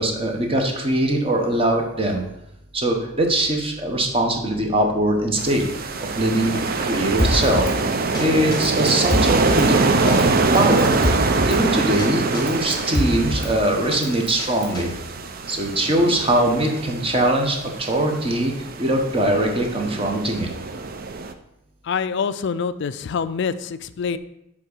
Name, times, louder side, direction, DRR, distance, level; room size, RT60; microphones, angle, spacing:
voice 1, 0.0-2.2 2.7-7.7 8.2-9.8 10.0-10.9 11.4-14.9 15.5-20.5, right 1 dB, 25° right, 2 dB, 1.1 m, -22 dB
sound 1, 5.4-21.3, right 3 dB, 45° right, 0.5 m, -24 dB
Drum kit, 7.2-7.8 8.1-8.2 8.5-9.7 10.1-10.2 10.5-11.6 12.0-12.1 12.3-13.5 13.9-14.8, left 1 dB, 20° left, 1.0 m, -25 dB
voice 2, 21.8-24.2, left 6 dB, 55° left, 13 dB, 0.4 m, -25 dB
7.6 x 3.6 x 6.5 m, 0.84 s
head